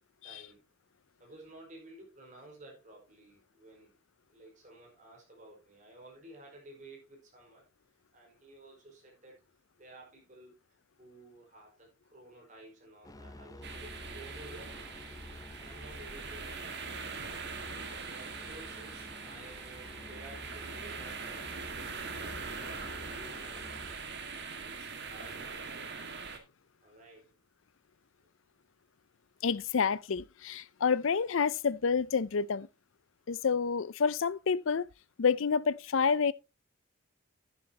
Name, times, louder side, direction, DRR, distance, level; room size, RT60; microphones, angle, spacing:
voice 1, 0.2-0.7 1.2-3.9 4.3-7.7 8.1-9.4 9.8-10.6 11.0-14.8 15.5-17.0 18.1-21.5 22.1-23.8 24.6-25.8 26.8-27.3, right 2 dB, 35° right, 4.9 m, -53 dB
sound 1, 13.0-23.9, left 1 dB, 15° left, 0.6 m, -50 dB
sound 2, 13.6-26.4, right 5 dB, 50° right, 1.9 m, -42 dB
voice 2, 29.4-32.7 33.3-34.9 35.2-36.3, left 5 dB, 70° left, 0.5 m, -28 dB
10.5 x 10.5 x 2.9 m
head